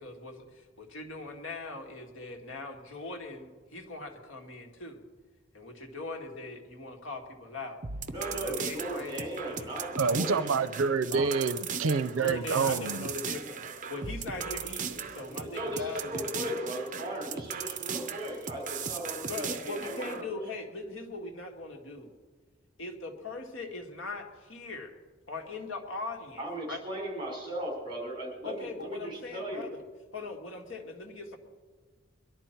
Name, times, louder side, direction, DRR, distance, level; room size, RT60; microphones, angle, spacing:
voice 1, 0.0-5.0 5.5-7.8 8.3-9.7 11.1-11.4 12.2-13.6 13.9-16.5 19.2-22.1 22.8-24.9 25.3-26.4 26.7-26.8 28.4-29.8 30.1-31.4, left 3 dB, 75° left, 2 dB, 1.9 m, -40 dB
sound 1, 7.8-20.2, right 6 dB, 40° right, 0.6 m, -38 dB
voice 2, 8.1-10.6 15.3-20.3 26.4-29.7, right 1 dB, 25° right, -1 dB, 4.8 m, -37 dB
voice 3, 10.0-13.1, right 5 dB, 85° right, 14 dB, 0.5 m, -27 dB
22.0 x 11.5 x 4.5 m, 1.4 s
head